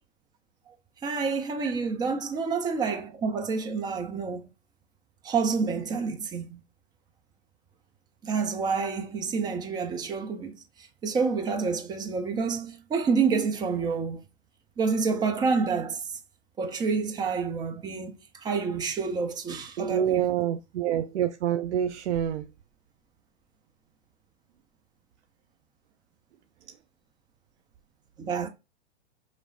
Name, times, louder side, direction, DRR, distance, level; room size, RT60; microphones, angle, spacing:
voice 1, 1.0-4.5 5.2-6.6 8.2-10.5 11.0-14.2 14.8-16.0 16.6-20.2 28.2-28.5, right 5 dB, 15° right, 0.4 m, -28 dB
voice 2, 19.8-22.5, right 10 dB, 85° right, 0.5 m, -27 dB
4.8 x 3.1 x 2.4 m
hypercardioid pair, 125°, 33 cm